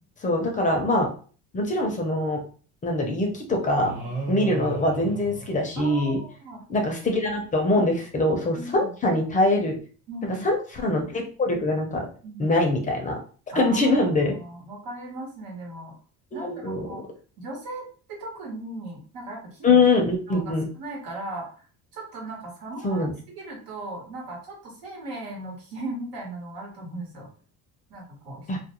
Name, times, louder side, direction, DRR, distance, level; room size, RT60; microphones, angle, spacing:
voice 1, 0.2-1.1 1.5-2.4 2.8-4.0 4.3-6.2 6.7-9.8 10.2-10.6 10.8-12.1 12.4-13.2 13.5-14.4 16.3-16.9 19.6-20.7 22.8-23.1 28.5-28.6, left 2 dB, 25° left, 2 dB, 0.4 m, -23 dB
sound 1, 3.8-6.3, right 3 dB, 35° right, 1.1 m, -35 dB
voice 2, 5.8-6.6 8.5-8.9 10.1-10.5 12.2-12.6 13.5-16.0 16.3-17.0 17.4-19.7 20.3-21.5 21.9-23.0 23.3-27.3 27.9-28.5, right 2 dB, 85° right, -1 dB, 1.2 m, -37 dB
2.3 x 2.1 x 2.9 m, 0.40 s
cardioid pair, 140°, 34 cm